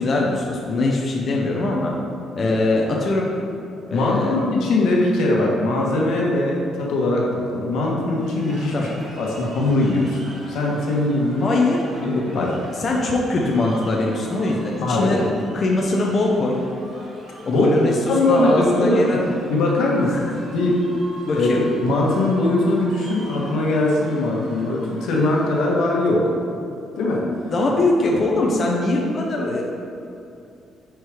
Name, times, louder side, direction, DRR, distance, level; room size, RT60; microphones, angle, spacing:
voice 1, 0.0-1.9 2.4-3.3 3.9-4.4 8.7-9.0 11.4-11.8 12.4-16.6 17.4-18.0 18.3-19.3 20.0-20.2 21.2-21.7 27.5-29.6, left 2 dB, 30° left, -2 dB, 0.5 m, -22 dB
voice 2, 3.9-8.7 9.2-10.2 10.5-11.5 12.0-12.5 14.8-15.2 17.5-17.7 18.1-19.0 19.5-20.2 20.5-20.8 21.3-21.5 21.8-26.3 27.0-27.3, left 2 dB, 80° left, -3 dB, 1.2 m, -20 dB
sound 1, 8.1-26.1, right 1 dB, 40° right, 1.0 m, -43 dB
4.7 x 4.6 x 4.8 m, 2.6 s
cardioid pair, 175°, 0 cm